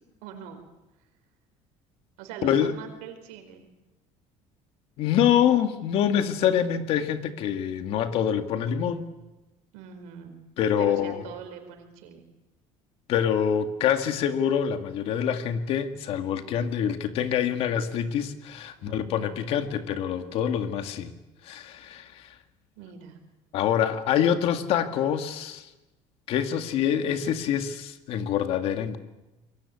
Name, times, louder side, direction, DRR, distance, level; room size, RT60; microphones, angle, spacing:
voice 1, 0.2-0.6 2.2-3.7 9.7-10.4 10.8-12.2 18.8-19.4 22.8-23.2, right 8 dB, 90° right, 5 dB, 4.7 m, -42 dB
voice 2, 2.4-2.7 5.0-9.1 10.6-11.2 13.1-21.1 21.4-22.3 23.5-25.7 26.3-29.0, left 9 dB, 50° left, 8 dB, 2.0 m, -25 dB
27.0 x 22.5 x 8.6 m, 1.0 s
cardioid pair, 175°, 13 cm